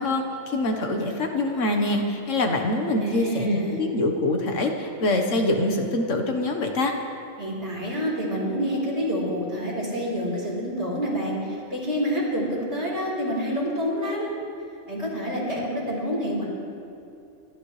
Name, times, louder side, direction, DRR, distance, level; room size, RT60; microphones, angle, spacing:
voice 1, 0.0-6.9, left 2 dB, 85° left, 3 dB, 1.6 m, -24 dB
voice 2, 2.9-3.8 7.4-14.3 14.9-16.5, equal, 65° right, -6 dB, 4.7 m, -28 dB
25.0 x 13.0 x 3.3 m, 2.7 s
omnidirectional pair, 1.3 m